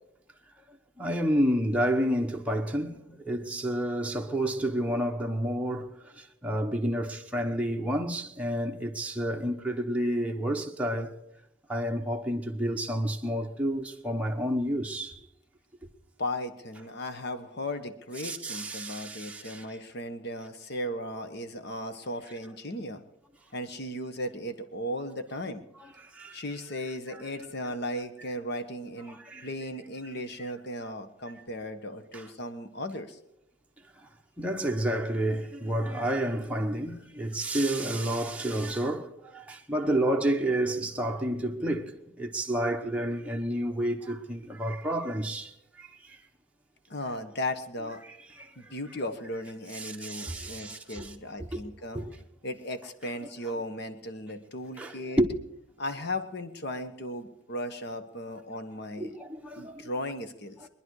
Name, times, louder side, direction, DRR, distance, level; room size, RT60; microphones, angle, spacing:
voice 1, 1.0-11.1 11.7-15.2 18.2-19.6 25.8-26.4 27.1-27.2 29.1-29.5 32.1-32.2 34.4-45.5 45.8-46.2 48.4-48.7 49.7-51.1 51.5-51.6 51.9-52.1 54.8-55.2 59.0-59.9, right 1 dB, 5° right, 1.0 m, -30 dB
voice 2, 16.2-23.0 23.5-25.6 26.3-33.2 46.9-48.0 48.6-52.0 52.4-55.2 55.8-59.2 59.5-60.7, left 1 dB, 55° left, 1.3 m, -36 dB
23.0 x 10.5 x 4.8 m
head